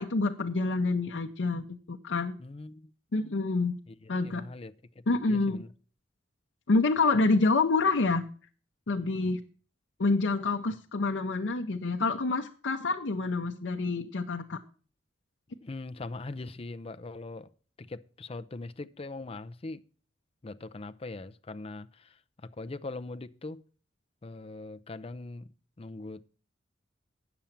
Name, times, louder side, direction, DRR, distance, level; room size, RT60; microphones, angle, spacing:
voice 1, 0.0-2.3 3.1-3.7 4.1-4.4 5.1-5.6 6.7-8.2 8.9-9.4 10.0-14.6, left 3 dB, 85° left, 0.7 m, -27 dB
voice 2, 2.4-2.9 3.2-3.3 4.0-4.7 5.3-5.7 15.6-17.5 17.8-19.8 20.4-22.2 22.4-23.6 24.2-25.5 25.8-26.3, left 2 dB, 30° left, 0.5 m, -41 dB
8.9 x 7.0 x 7.2 m
head